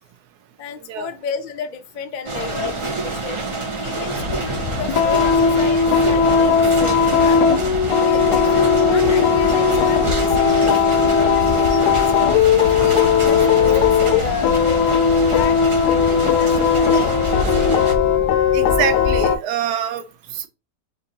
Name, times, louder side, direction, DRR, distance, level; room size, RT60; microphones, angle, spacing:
voice 1, 0.6-3.4 3.8-7.4 8.0-14.8 15.2-18.0, left 7 dB, 70° left, 0.4 m, -32 dB
sound 1, 2.3-17.9, right 3 dB, 40° right, 0.4 m, -26 dB
sound 2, 4.2-19.4, left 7 dB, 85° left, 1.2 m, -17 dB
voice 2, 18.5-20.0 20.3-20.5, right 9 dB, 80° right, 1.2 m, -24 dB
4.5 x 2.6 x 2.7 m
omnidirectional pair, 1.7 m